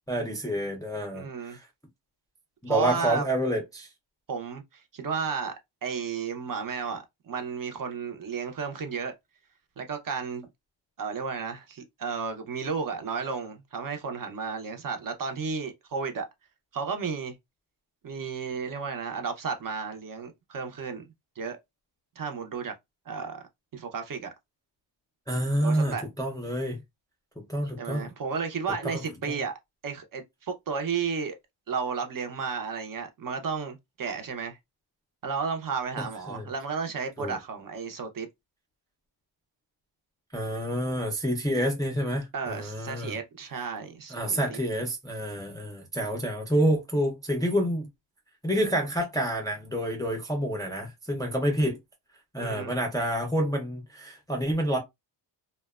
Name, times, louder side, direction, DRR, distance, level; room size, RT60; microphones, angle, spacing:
voice 1, 0.1-1.7 2.6-3.9 25.3-26.8 27.4-28.1 28.8-29.0 29.3-29.4 36.0-36.5 37.2-37.4 40.3-43.2 44.1-47.9 48.4-51.8 52.3-54.8, right 1 dB, 10° left, 0.4 m, -28 dB
voice 2, 1.1-1.6 2.7-3.3 4.3-5.5 5.8-9.1 9.8-10.5 11.0-16.3 16.7-17.3 18.0-21.0 21.4-21.6 22.2-22.7 23.1-23.4 23.7-24.3 25.6-26.0 27.8-29.5 29.8-31.4 31.7-34.6 35.2-38.3 42.3-44.6 52.4-52.7, right 5 dB, 45° right, 0.5 m, -33 dB
2.7 x 2.1 x 2.2 m
wide cardioid pair, 140°, 49 cm